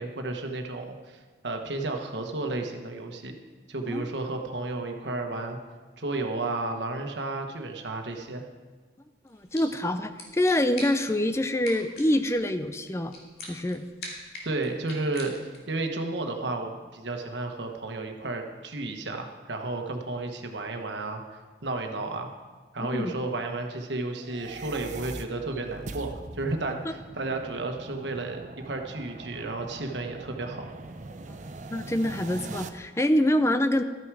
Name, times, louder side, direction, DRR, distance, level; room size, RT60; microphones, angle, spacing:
voice 1, 0.0-3.3 3.7-5.6 6.0-8.4 14.4-15.4 15.7-21.2 21.6-22.3 22.7-30.7, right 2 dB, 90° right, 4 dB, 1.3 m, -32 dB
sound 1, 9.3-15.8, left 2 dB, 60° left, 2.4 m, -44 dB
voice 2, 9.3-13.1 13.5-13.8 22.8-23.1 26.8-26.9 31.7-33.8, left 1 dB, 15° left, 10 dB, 0.4 m, -25 dB
sound 2, 24.2-32.7, right 3 dB, 45° right, 0.6 m, -42 dB
13.0 x 9.4 x 4.8 m, 1.4 s
head